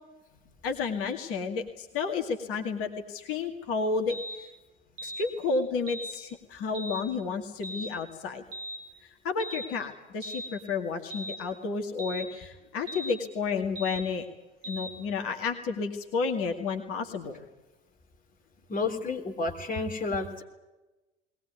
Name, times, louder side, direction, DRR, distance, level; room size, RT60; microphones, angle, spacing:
voice 1, 0.6-4.5 5.0-8.4 9.0-14.3 14.7-17.4, left 4 dB, 45° left, 3 dB, 2.3 m, -31 dB
sound 1, 4.1-4.4 5.0-5.3 5.9-6.1 6.7-7.0 7.6-7.9 8.5-8.8 9.4-9.7 10.2-10.5 11.1-11.4 12.0-12.3 12.9-13.2 13.8-14.0 14.6-14.9, equal, 60° right, 2.7 m, -38 dB
voice 2, 18.7-20.4, left 3 dB, 25° left, 3 dB, 3.5 m, -31 dB
21.0 x 19.0 x 9.5 m, 1.1 s
figure-of-eight pair, 70°, 31 cm